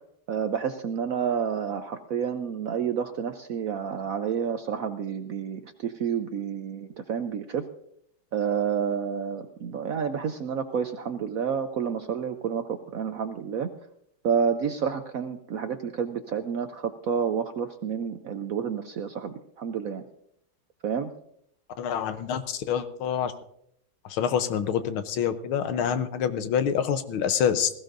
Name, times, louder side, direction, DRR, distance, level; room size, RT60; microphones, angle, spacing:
voice 1, 0.3-7.6 8.3-13.7 14.2-20.0 20.8-21.1, right 7 dB, 80° right, 8 dB, 0.7 m, -29 dB
voice 2, 21.8-23.3 24.0-27.7, left 8 dB, 85° left, 11 dB, 1.7 m, -26 dB
20.0 x 15.5 x 2.6 m, 0.72 s
omnidirectional pair, 2.3 m